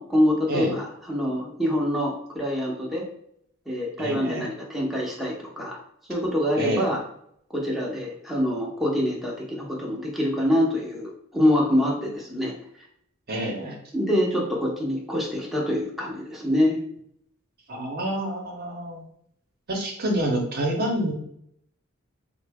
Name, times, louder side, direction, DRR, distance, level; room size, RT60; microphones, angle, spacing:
voice 1, 0.0-3.0 3.7-5.8 6.1-7.0 7.5-12.5 13.9-16.8, equal, ahead, -3 dB, 0.6 m, -25 dB
voice 2, 4.0-4.5 6.6-6.9 13.3-13.8 17.7-19.0 19.7-21.1, right 1 dB, 50° right, 1 dB, 0.7 m, -27 dB
3.8 x 2.0 x 3.4 m, 0.71 s
head